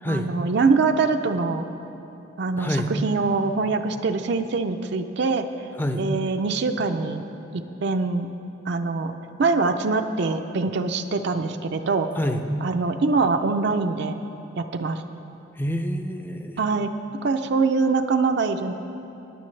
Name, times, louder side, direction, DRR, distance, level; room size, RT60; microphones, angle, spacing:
voice 1, 0.1-1.6 2.4-5.5 6.0-7.2 7.5-8.3 8.7-9.1 9.4-12.1 12.6-14.2 14.6-15.0 16.6-16.9 17.2-18.7, right 4 dB, 60° right, 6 dB, 0.4 m, -23 dB
voice 2, 2.6-2.9 5.8-6.0 12.2-12.4 15.6-16.6, equal, 10° left, 6 dB, 0.5 m, -27 dB
19.0 x 9.7 x 3.2 m, 2.9 s
head